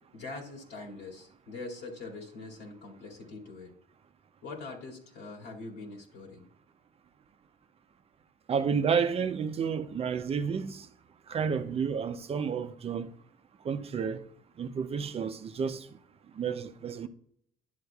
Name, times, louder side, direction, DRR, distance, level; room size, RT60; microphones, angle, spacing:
voice 1, 0.0-3.7 4.4-6.5, left 3 dB, 85° left, 2.3 m, -43 dB
voice 2, 8.5-10.9 11.3-13.1 13.6-14.2 14.6-15.9 16.4-17.1, right 6 dB, 35° right, 0.5 m, -30 dB
11.0 x 7.8 x 2.3 m
cardioid pair, 110°, 17 cm